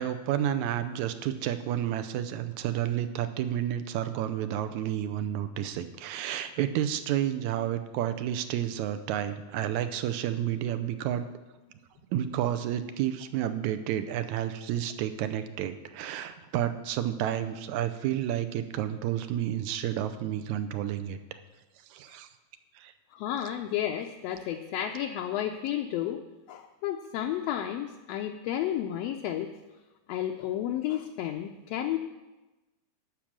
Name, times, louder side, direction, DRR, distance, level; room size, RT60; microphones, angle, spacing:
voice 1, 0.0-11.3 12.1-21.2 21.9-22.3 22.8-22.9, right 11 dB, 85° right, 10 dB, 2.0 m, -30 dB
voice 2, 23.1-26.2 26.5-29.5 30.1-32.0, left 11 dB, 75° left, 3 dB, 1.5 m, -32 dB
12.0 x 6.0 x 7.4 m, 1.1 s
omnidirectional pair, 3.4 m